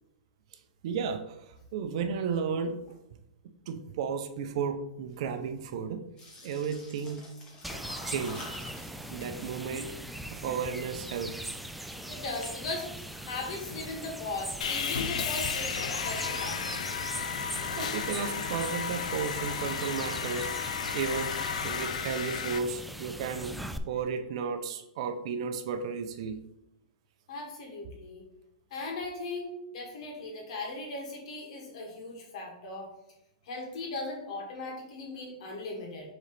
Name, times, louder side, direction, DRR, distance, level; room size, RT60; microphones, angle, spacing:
voice 1, 0.8-2.8 3.7-6.0 6.4-7.2 8.1-8.5 9.1-9.9 10.3-11.6 17.8-23.5 23.9-26.4, right 6 dB, 55° right, 8 dB, 0.7 m, -33 dB
sound 1, 6.2-11.3 11.6-12.6 12.9-14.1, left 2 dB, 20° left, 1.5 m, -49 dB
sound 2, 7.6-23.8, right 1 dB, ahead, 0.3 m, -40 dB
voice 2, 12.1-12.9 13.2-16.8 27.3-28.3 28.7-32.9 33.4-36.1, left 3 dB, 60° left, 0 dB, 2.2 m, -38 dB
Sawing, 14.6-22.6, left 7 dB, 80° left, 0.7 m, -33 dB
7.2 x 3.9 x 3.4 m, 0.83 s
hypercardioid pair, 150°, 4 cm